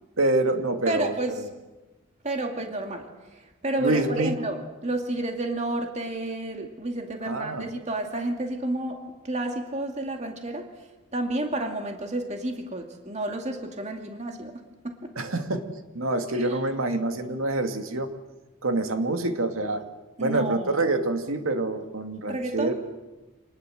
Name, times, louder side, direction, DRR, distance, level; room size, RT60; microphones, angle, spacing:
voice 1, 0.2-1.2 3.8-4.4 7.3-7.7 15.2-15.7 15.9-18.1 18.6-19.8 20.2-22.7, right 2 dB, 80° right, 6 dB, 2.4 m, -26 dB
voice 2, 0.9-1.4 2.2-9.0 9.2-15.1 16.3-16.6 20.2-20.8 22.3-22.7, right 2 dB, 35° right, 3 dB, 2.3 m, -31 dB
26.5 x 20.0 x 7.8 m, 1.1 s
head